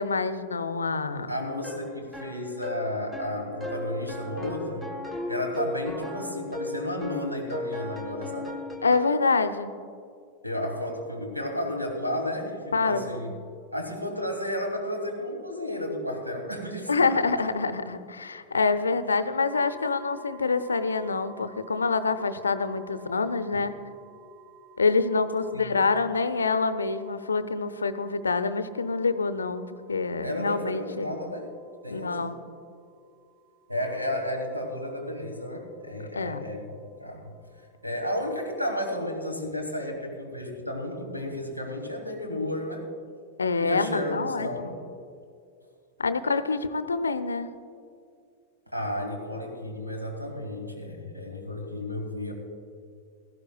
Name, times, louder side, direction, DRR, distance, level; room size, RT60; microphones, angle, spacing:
voice 1, 0.0-1.3 8.8-9.7 12.7-13.2 16.9-23.8 24.8-29.6 29.9-31.2 31.9-32.4 36.1-36.4 43.4-44.8 46.0-47.5, left 4 dB, 75° left, 12 dB, 0.6 m, -26 dB
voice 2, 1.3-4.9 5.3-8.6 10.4-13.3 13.7-17.2 23.5-23.6 25.5-25.8 30.2-31.5 31.8-32.3 33.7-37.3 37.8-42.9 43.6-44.8 48.7-52.3, left 1 dB, 90° right, 3 dB, 1.7 m, -32 dB
sound 1, 1.6-9.3, left 1 dB, 5° right, 1.2 m, -36 dB
sound 2, 19.5-39.1, right 5 dB, 25° right, 3.3 m, -54 dB
17.0 x 15.0 x 2.3 m, 2.2 s
figure-of-eight pair, 90°, 0 cm